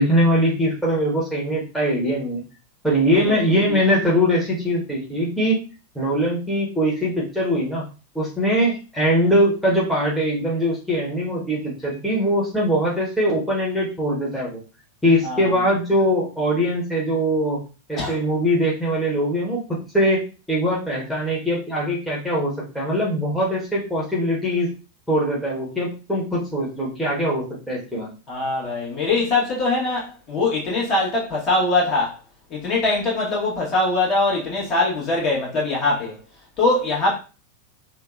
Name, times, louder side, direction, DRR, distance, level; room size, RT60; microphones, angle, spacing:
voice 1, 0.0-2.4 2.8-5.6 5.9-7.9 8.1-14.6 15.0-17.6 17.9-19.6 19.9-24.7 25.1-28.1, equal, 5° left, 1.1 m, -22 dB
voice 2, 28.3-32.2 32.5-36.2 36.6-37.2, left 2 dB, 30° left, 1.4 m, -22 dB
3.3 x 2.1 x 2.5 m
figure-of-eight pair, 90°, 0 cm